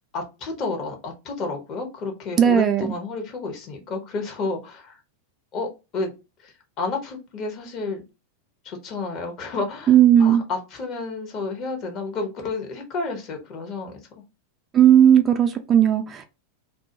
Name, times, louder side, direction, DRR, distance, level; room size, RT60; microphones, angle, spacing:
voice 1, 0.1-5.0 5.5-5.7 5.9-6.1 6.4-8.0 8.6-14.2, left 3 dB, 35° left, 0.8 m, -31 dB
voice 2, 2.4-2.9 9.9-10.4 14.7-16.3, right 9 dB, 25° right, 0.3 m, -16 dB
2.2 x 2.1 x 2.8 m
figure-of-eight pair, 90°, 0 cm